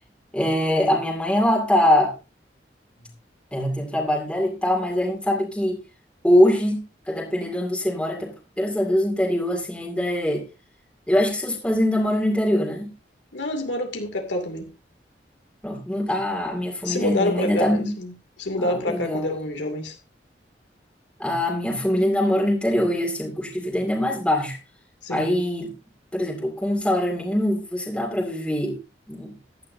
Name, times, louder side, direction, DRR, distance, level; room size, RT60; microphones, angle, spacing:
voice 1, 0.3-2.1 3.5-5.8 6.2-10.4 11.1-12.9 15.6-17.9 18.6-19.3 21.2-24.6 25.1-25.7 26.1-28.8 29.1-29.3, left 1 dB, 5° left, 2.4 m, -23 dB
voice 2, 13.3-14.7 16.8-20.0 25.0-25.4, left 1 dB, 90° left, 2.6 m, -27 dB
16.0 x 11.5 x 2.7 m
head